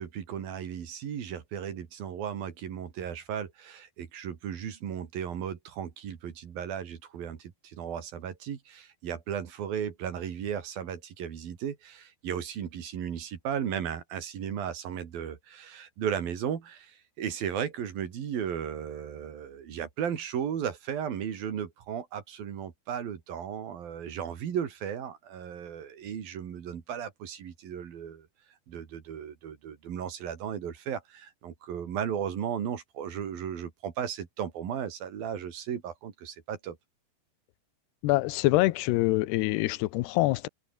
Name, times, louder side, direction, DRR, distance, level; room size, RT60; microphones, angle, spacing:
voice 1, 0.0-28.3 28.7-36.8, right 8 dB, 65° right, 4.2 m, -35 dB
voice 2, 38.0-40.5, left 19 dB, 85° left, 2.9 m, -25 dB
omnidirectional pair, 4.7 m